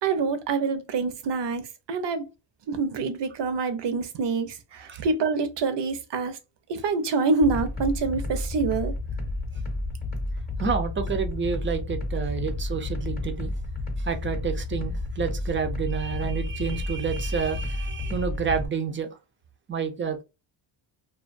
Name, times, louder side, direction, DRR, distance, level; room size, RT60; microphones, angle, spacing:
voice 1, 0.0-2.3 2.7-6.4 6.7-8.9, right 4 dB, 60° right, 0.7 m, -26 dB
sound 1, 7.4-18.7, left 2 dB, 20° left, 0.7 m, -31 dB
voice 2, 10.6-13.5 14.0-19.2 19.7-20.2, right 6 dB, 25° right, 0.5 m, -29 dB
2.4 x 2.3 x 2.4 m
cardioid pair, 95°, 49 cm